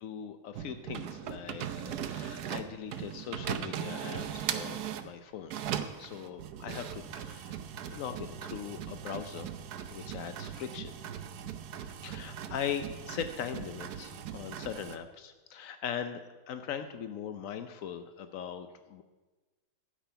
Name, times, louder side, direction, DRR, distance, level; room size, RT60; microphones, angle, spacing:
voice 1, 0.0-5.5 6.0-7.6 7.9-9.5 9.9-10.9 12.0-16.2 16.5-19.0, left 8 dB, 90° left, 9 dB, 0.7 m, -40 dB
sound 1, 0.5-5.1 5.5-15.0, right 9 dB, 65° right, 1.0 m, -39 dB
12.5 x 8.9 x 5.6 m, 1.2 s
omnidirectional pair, 2.2 m